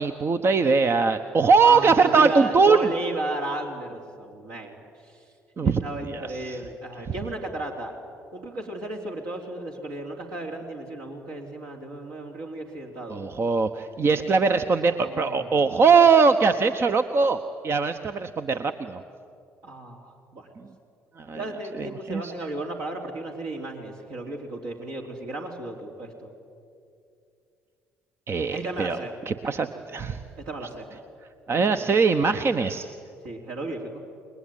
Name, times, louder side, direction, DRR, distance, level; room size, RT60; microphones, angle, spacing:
voice 1, 0.0-2.9 5.6-5.8 6.1-6.6 7.0-7.1 13.1-19.0 21.2-21.4 21.8-22.3 28.3-29.0 29.3-30.2 31.5-32.9, right 5 dB, 35° right, 9 dB, 1.1 m, -21 dB
voice 2, 1.6-5.2 5.6-7.9 8.3-13.2 14.1-14.3 15.0-15.8 19.6-20.5 21.3-26.3 28.5-29.1 30.4-30.9 31.5-32.0 33.2-34.0, right 2 dB, 60° right, 0 dB, 3.3 m, -34 dB
28.5 x 21.5 x 9.3 m, 2.5 s
figure-of-eight pair, 50°, 7 cm